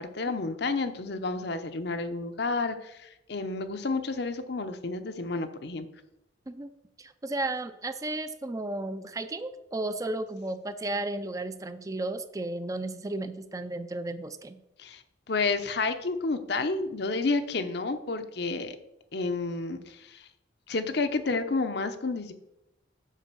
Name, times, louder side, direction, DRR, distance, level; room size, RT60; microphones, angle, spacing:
voice 1, 0.0-5.9 14.8-15.0 15.3-18.8 19.1-20.3 20.7-22.3, left 3 dB, 60° left, 9 dB, 0.7 m, -30 dB
voice 2, 7.0-14.6, right 2 dB, 20° right, 11 dB, 0.4 m, -34 dB
7.4 x 5.4 x 6.8 m, 0.87 s
head